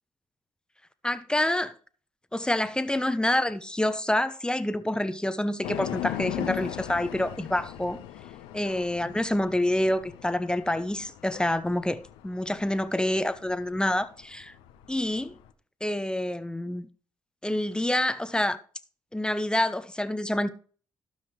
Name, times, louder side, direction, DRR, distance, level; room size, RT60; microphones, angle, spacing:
voice 1, 1.0-1.7 2.3-8.0 8.5-14.5 14.9-15.4 15.8-16.9 17.4-18.6 19.1-20.5, left 1 dB, 10° left, 1.0 m, -27 dB
sound 1, 5.6-15.5, left 13 dB, 90° left, 0.9 m, -39 dB
17.0 x 5.7 x 3.2 m
supercardioid pair, 55°, 9 cm